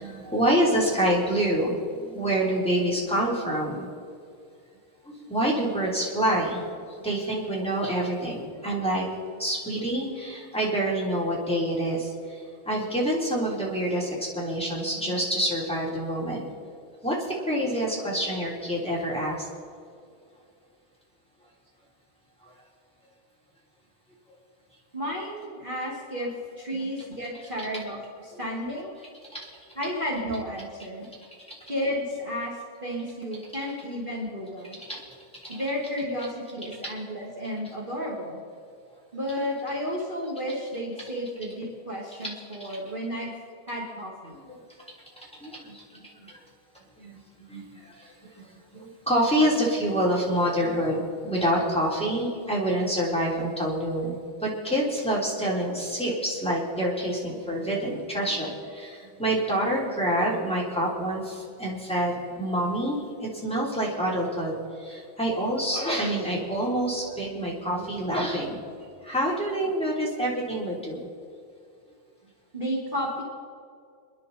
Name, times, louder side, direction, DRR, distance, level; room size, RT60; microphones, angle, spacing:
voice 1, 0.0-3.9 5.3-6.6 7.0-12.1 12.6-16.7 17.0-17.1 17.5-19.4 29.3-29.4 34.9-35.0 36.8-36.9 42.2-42.3 44.3-44.6 45.4-46.0 46.3-46.4 47.0-47.2 47.5-47.7 48.7-54.2 54.4-63.0 63.4-64.5 64.8-68.6 69.0-71.0, right 1 dB, ahead, -5 dB, 2.6 m, -27 dB
voice 2, 24.9-28.9 29.7-31.1 31.6-34.8 35.5-38.4 39.1-43.3 43.7-44.3 69.5-69.6 72.5-73.2, equal, 35° right, -4 dB, 0.8 m, -32 dB
29.0 x 10.5 x 4.3 m, 2.3 s
omnidirectional pair, 5.1 m